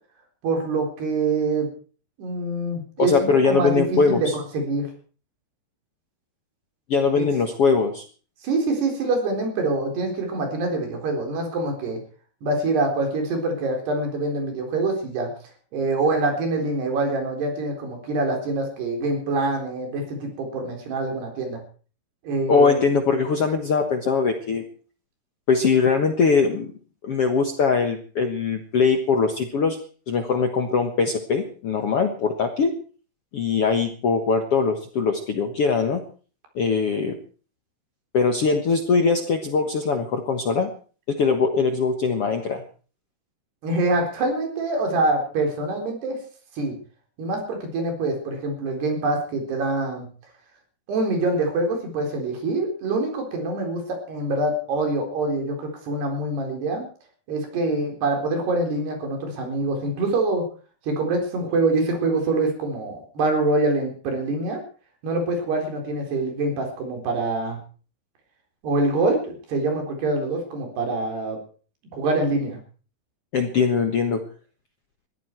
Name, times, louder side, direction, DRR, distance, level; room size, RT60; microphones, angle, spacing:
voice 1, 0.4-1.7 2.2-4.9 7.2-7.3 8.4-12.0 12.4-15.3 15.7-21.6 22.2-22.9 43.6-46.2 46.6-46.8 47.2-50.1 50.9-56.8 57.3-60.4 60.8-64.6 65.0-67.6 68.6-71.4 71.9-72.6, right 2 dB, 80° right, 3 dB, 6.1 m, -25 dB
voice 2, 3.0-4.3 6.9-8.0 22.5-24.6 25.5-26.7 27.0-29.8 30.1-32.7 33.3-36.0 36.5-37.2 38.1-40.7 41.1-42.6 73.3-74.2, left 5 dB, 60° left, 5 dB, 1.6 m, -21 dB
21.5 x 14.0 x 4.6 m, 0.41 s
omnidirectional pair, 4.6 m